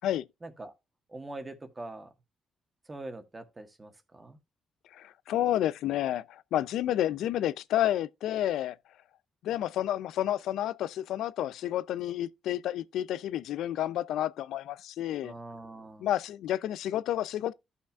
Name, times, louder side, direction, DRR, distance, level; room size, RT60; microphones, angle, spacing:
voice 1, 0.4-0.7 1.1-2.1 2.9-4.4 15.2-16.1, right 2 dB, 20° right, 1.4 m, -43 dB
voice 2, 4.9-8.8 9.4-15.3 16.0-17.5, left 12 dB, 80° left, 0.4 m, -30 dB
14.0 x 5.9 x 2.4 m
cardioid pair, 90°, 0 cm